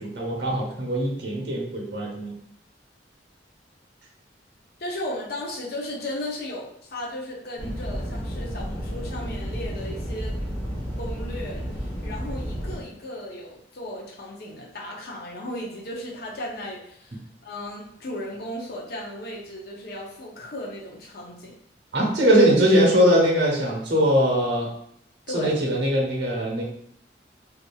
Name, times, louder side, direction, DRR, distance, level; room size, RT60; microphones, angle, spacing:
voice 1, 0.0-2.3 21.9-24.7 25.3-26.6, equal, 70° right, -1 dB, 0.9 m, -21 dB
voice 2, 4.8-10.4 11.0-21.5 25.3-25.6, left 1 dB, 55° left, -3 dB, 0.6 m, -35 dB
sound 1, 7.6-12.8, equal, 10° left, 0.9 m, -31 dB
2.7 x 2.6 x 2.2 m, 0.69 s
head